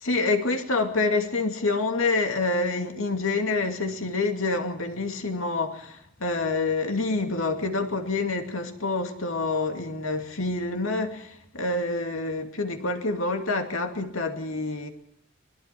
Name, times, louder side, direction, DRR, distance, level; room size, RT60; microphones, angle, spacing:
voice 1, 0.0-14.9, left 3 dB, 85° left, 2.4 m, -27 dB
27.0 x 21.5 x 4.6 m
head